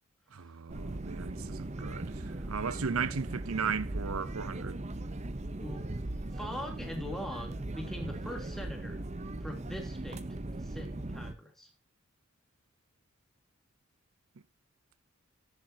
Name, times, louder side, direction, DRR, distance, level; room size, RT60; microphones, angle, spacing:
voice 1, 0.3-4.8, right 6 dB, 85° right, 0.7 m, -36 dB
sound 1, 0.7-11.3, right 2 dB, 30° right, 0.7 m, -39 dB
voice 2, 5.5-5.9 6.3-9.0 9.4-10.2 10.6-11.7, equal, ahead, 3.1 m, -42 dB
14.5 x 11.0 x 2.8 m
head